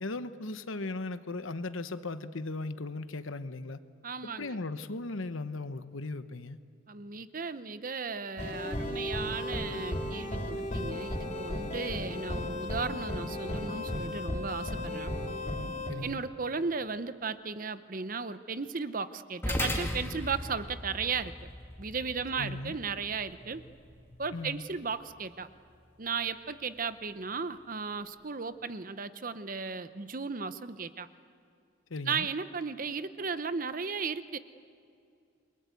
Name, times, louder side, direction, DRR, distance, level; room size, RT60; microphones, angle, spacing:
voice 1, 0.0-3.8 4.2-6.6 15.9-16.2 22.4-22.7 24.3-24.6 31.9-32.3, left 2 dB, 75° left, 12 dB, 1.0 m, -37 dB
voice 2, 4.0-4.6 6.9-15.1 16.0-21.3 21.8-23.6 24.2-25.5 26.0-31.1 32.1-34.4, right 5 dB, 40° right, 12 dB, 0.8 m, -35 dB
sound 1, 8.4-15.9, left 1 dB, 35° left, 4.4 m, -35 dB
sound 2, 19.4-28.1, left 1 dB, 10° left, 1.9 m, -40 dB
28.5 x 22.5 x 8.3 m, 2.5 s
head